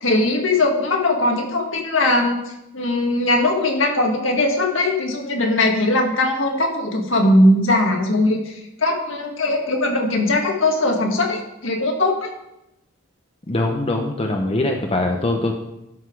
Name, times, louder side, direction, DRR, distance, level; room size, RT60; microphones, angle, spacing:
voice 1, 0.0-12.3, left 2 dB, 70° left, 2 dB, 1.9 m, -20 dB
voice 2, 13.5-15.6, left 2 dB, 30° left, 2 dB, 0.8 m, -22 dB
12.5 x 5.8 x 4.7 m, 0.87 s
head